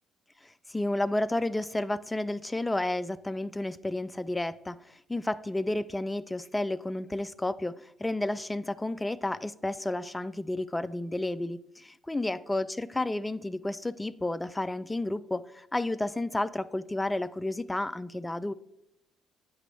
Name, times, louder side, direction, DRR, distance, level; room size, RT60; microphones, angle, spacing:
voice 1, 0.4-18.5, left 2 dB, 15° left, 15 dB, 0.3 m, -31 dB
7.9 x 3.0 x 4.4 m, 0.79 s
supercardioid pair, 65°, 0 cm